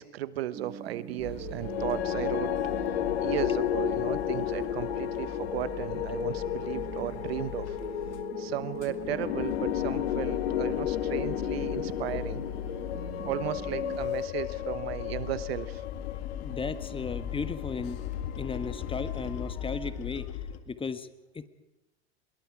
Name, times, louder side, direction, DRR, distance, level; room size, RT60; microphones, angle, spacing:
voice 1, 0.0-2.5 3.2-7.8 8.4-12.4 13.2-15.8, right 13 dB, 70° right, 16 dB, 1.2 m, -35 dB
sound 1, 0.5-14.0, right 9 dB, 30° right, 1.6 m, -43 dB
sound 2, 1.2-8.3 8.6-20.6, left 10 dB, 50° left, 2.1 m, -39 dB
sound 3, 1.6-17.9, left 12 dB, 80° left, 0.8 m, -33 dB
voice 2, 16.1-18.0 18.3-20.4 20.7-21.5, left 4 dB, 15° left, 12 dB, 1.4 m, -36 dB
24.5 x 22.0 x 4.9 m, 1.0 s
hypercardioid pair, 90°, 31 cm